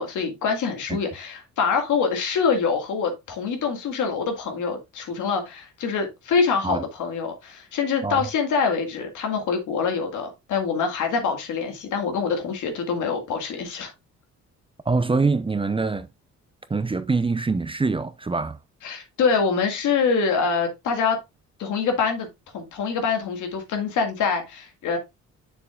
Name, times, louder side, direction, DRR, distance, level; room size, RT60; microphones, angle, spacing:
voice 1, 0.0-13.9 18.8-21.2 21.6-22.3 22.5-25.0, left 5 dB, 80° left, 2.0 m, -25 dB
voice 2, 14.9-16.1 16.7-18.6, right 4 dB, 15° right, 0.6 m, -24 dB
6.9 x 6.9 x 2.4 m
cardioid pair, 90°, 30 cm